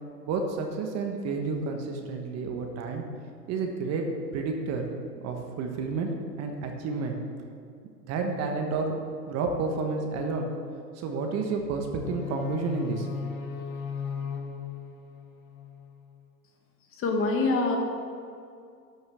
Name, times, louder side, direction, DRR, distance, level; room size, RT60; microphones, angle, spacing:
voice 1, 0.3-3.0 3.5-4.1 4.3-4.9 5.2-6.1 6.4-7.2 8.1-8.9 9.3-10.5 11.0-13.1, right 4 dB, 30° right, 3 dB, 1.4 m, -30 dB
sound 1, 12.0-16.0, left 6 dB, 55° left, 1.4 m, -36 dB
voice 2, 17.0-17.8, left 3 dB, 25° left, 2 dB, 1.4 m, -24 dB
12.5 x 6.3 x 6.3 m, 2.4 s
hypercardioid pair, 115°, 50 cm